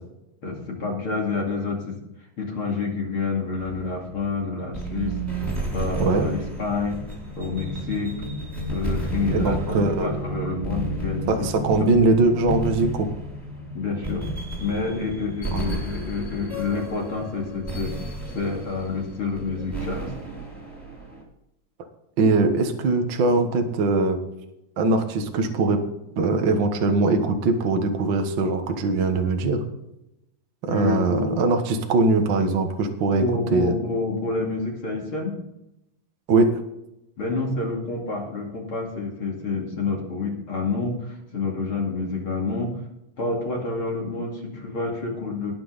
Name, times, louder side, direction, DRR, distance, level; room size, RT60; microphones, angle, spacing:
voice 1, 0.4-2.0 2.4-5.1 5.7-7.0 7.4-8.1 8.7-11.8 13.7-14.3 14.6-17.9 18.3-20.1 30.6-31.3 33.2-35.3 37.2-42.7 43.2-45.5, left 3 dB, 40° left, -1 dB, 2.9 m, -28 dB
sound 1, 3.6-21.2, right 1 dB, 5° right, 3.5 m, -33 dB
sound 2, 7.3-13.0, equal, 75° left, 4.4 m, -36 dB
voice 2, 9.3-10.3 11.3-13.1 15.5-15.8 22.2-24.2 24.8-25.8 26.2-29.6 30.7-33.2 33.5-33.7 36.3-36.5, right 3 dB, 80° right, 5 dB, 1.0 m, -21 dB
20.0 x 7.0 x 4.1 m, 0.88 s
omnidirectional pair, 4.4 m